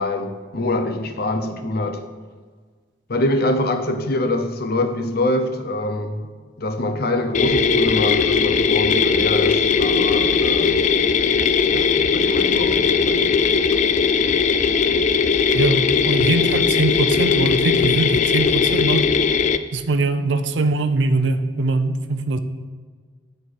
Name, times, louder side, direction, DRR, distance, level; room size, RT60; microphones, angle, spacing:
voice 1, 0.0-2.1 3.1-6.2 6.6-10.9 11.7-13.4, left 1 dB, 55° left, 0.8 m, -24 dB
sound 1, 7.3-19.6, left 5 dB, 40° left, 0.4 m, -18 dB
voice 2, 15.5-19.1 19.7-22.4, right 2 dB, 75° right, 0.6 m, -22 dB
9.3 x 4.4 x 6.5 m
head